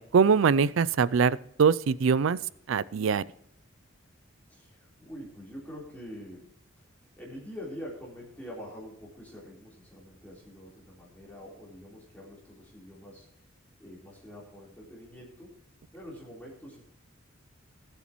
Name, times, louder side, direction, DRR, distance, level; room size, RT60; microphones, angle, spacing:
voice 1, 0.0-2.4 2.7-3.2, right 6 dB, 70° right, 20 dB, 0.4 m, -23 dB
voice 2, 4.5-6.5 7.2-13.5 13.8-15.6 15.9-16.8, equal, 10° left, -6 dB, 3.9 m, -45 dB
20.5 x 8.2 x 3.1 m, 0.74 s
head